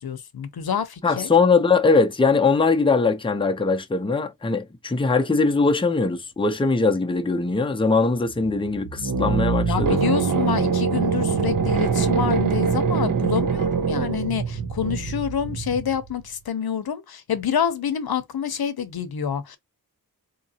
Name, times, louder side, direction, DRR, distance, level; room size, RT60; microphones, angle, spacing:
voice 1, 0.0-1.3 9.7-19.6, left 8 dB, 80° left, 0.6 m, -27 dB
voice 2, 1.0-10.0, left 4 dB, 15° left, 0.5 m, -21 dB
sound 1, 8.3-16.1, right 5 dB, 60° right, 0.7 m, -23 dB
3.8 x 2.8 x 2.7 m
wide cardioid pair, 95°, 37 cm